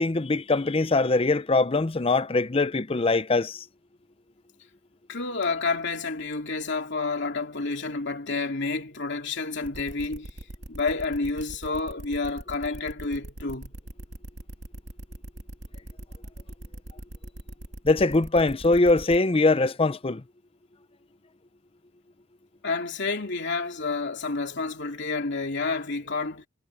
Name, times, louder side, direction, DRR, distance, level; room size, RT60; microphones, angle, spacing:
voice 1, 0.0-3.6 17.8-20.2, left 3 dB, 25° left, 0.6 m, -22 dB
voice 2, 5.1-10.3 10.7-13.7 22.6-26.5, left 3 dB, 55° left, 2.9 m, -29 dB
sound 1, 9.6-19.2, right 1 dB, 60° right, 2.4 m, -41 dB
head